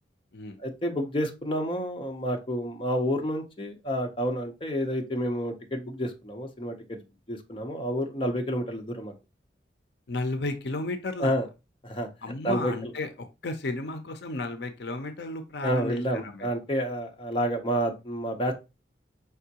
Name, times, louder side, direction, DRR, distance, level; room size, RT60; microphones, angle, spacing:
voice 1, 0.6-7.0 7.3-9.1 11.2-11.5 11.8-12.1 12.4-12.9 15.6-18.5, equal, 30° left, 3 dB, 0.7 m, -29 dB
voice 2, 10.1-11.3 12.2-13.1 13.4-16.5, left 2 dB, 65° left, 8 dB, 0.6 m, -33 dB
5.3 x 3.5 x 2.8 m, 0.25 s
head